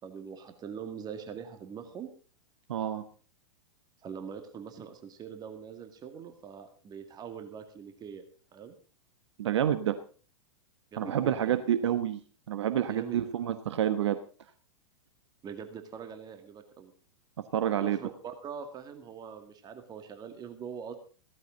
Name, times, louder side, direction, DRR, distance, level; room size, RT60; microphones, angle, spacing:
voice 1, 0.0-2.1 4.0-8.2 8.5-8.7 10.9-11.8 12.8-13.2 15.4-16.9 17.8-20.9, right 7 dB, 25° right, 7 dB, 2.1 m, -43 dB
voice 2, 2.7-3.0 9.4-10.0 11.0-12.2 12.5-14.2 17.5-18.0, right 10 dB, 65° right, 11 dB, 1.1 m, -28 dB
16.0 x 14.0 x 3.8 m, 0.38 s
figure-of-eight pair, 105°, 16 cm